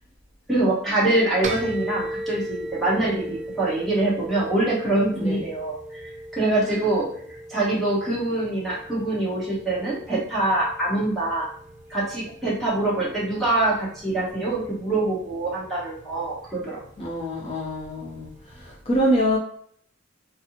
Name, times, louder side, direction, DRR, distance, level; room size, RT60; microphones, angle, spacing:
voice 1, 0.5-11.5 11.9-16.8, right 2 dB, ahead, -8 dB, 1.0 m, -24 dB
sound 1, 1.4-18.8, right 1 dB, 35° right, 0.4 m, -38 dB
voice 2, 2.9-3.2 5.1-5.5 6.6-6.8 17.0-19.4, equal, 30° left, -3 dB, 0.6 m, -26 dB
4.1 x 2.0 x 2.8 m, 0.62 s
head